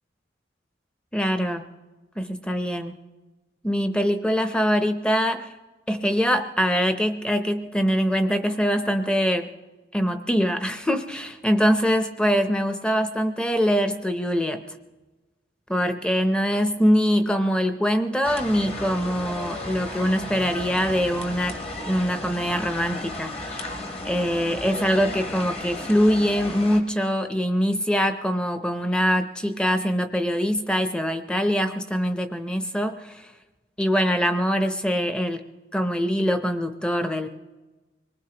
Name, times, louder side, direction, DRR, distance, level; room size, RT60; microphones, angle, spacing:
voice 1, 1.1-1.7 2.2-3.0 3.6-5.5 5.9-9.5 9.9-14.6 15.7-21.5 21.9-23.7 24.0-33.3 33.8-37.3, equal, 5° left, 8 dB, 0.6 m, -23 dB
sound 1, 18.2-26.8, left 1 dB, 30° left, 1.1 m, -34 dB
25.5 x 19.5 x 2.9 m, 1.2 s
head